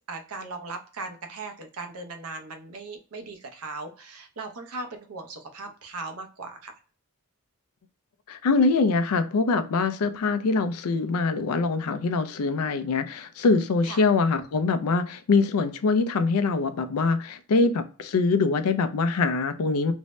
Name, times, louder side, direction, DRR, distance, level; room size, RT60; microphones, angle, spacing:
voice 1, 0.1-6.7 11.9-12.0 13.8-14.0, right 3 dB, 80° right, 0.6 m, -38 dB
voice 2, 8.3-19.9, left 4 dB, 85° left, 0.4 m, -24 dB
2.6 x 2.1 x 3.0 m
head